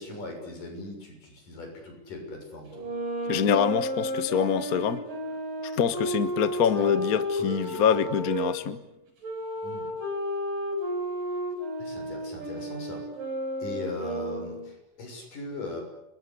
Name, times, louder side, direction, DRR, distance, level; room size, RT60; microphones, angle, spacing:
voice 1, 0.0-2.9 6.8-7.0 7.4-8.1 9.6-9.9 11.8-13.0 13.6-15.8, left 2 dB, 85° left, 3 dB, 8.4 m, -39 dB
sound 1, 2.7-8.5 9.2-14.7, equal, 90° right, 7.7 m, -32 dB
voice 2, 3.3-5.0 5.6-8.8, left 7 dB, 65° left, 12 dB, 0.9 m, -25 dB
30.0 x 22.0 x 8.4 m, 0.88 s
omnidirectional pair, 3.7 m